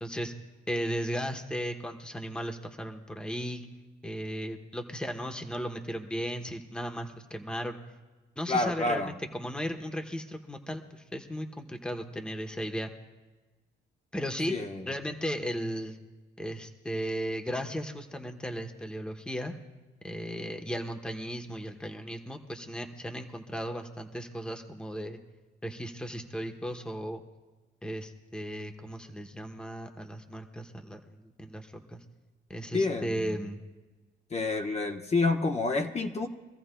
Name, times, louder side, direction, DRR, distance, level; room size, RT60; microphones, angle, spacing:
voice 1, 0.0-0.3 0.7-3.7 4.0-7.8 8.4-12.9 14.1-14.6 14.9-16.0 16.4-19.5 20.0-25.2 25.6-27.2 27.8-32.0 32.5-33.6, equal, 5° left, 4 dB, 1.0 m, -36 dB
voice 2, 8.5-9.1 14.5-14.9 32.7-33.4 34.3-36.3, left 3 dB, 35° left, 2 dB, 1.0 m, -28 dB
24.5 x 14.0 x 2.2 m, 1.2 s
cardioid pair, 90°, 20 cm